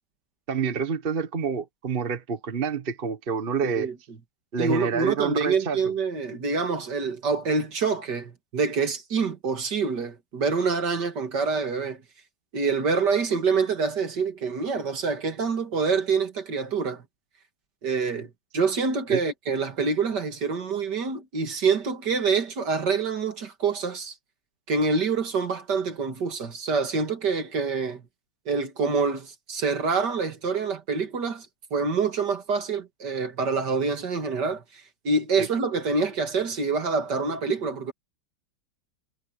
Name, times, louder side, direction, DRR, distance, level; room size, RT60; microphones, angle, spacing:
voice 1, 0.5-3.9 4.5-5.8 19.1-19.2 35.4-35.5, right 6 dB, 35° right, 1.2 m, -27 dB
voice 2, 3.6-3.9 4.6-12.0 12.5-17.0 17.8-24.2 24.7-28.0 28.5-31.5 31.7-37.9, right 4 dB, 60° right, 2.6 m, -26 dB
omnidirectional pair, 2.1 m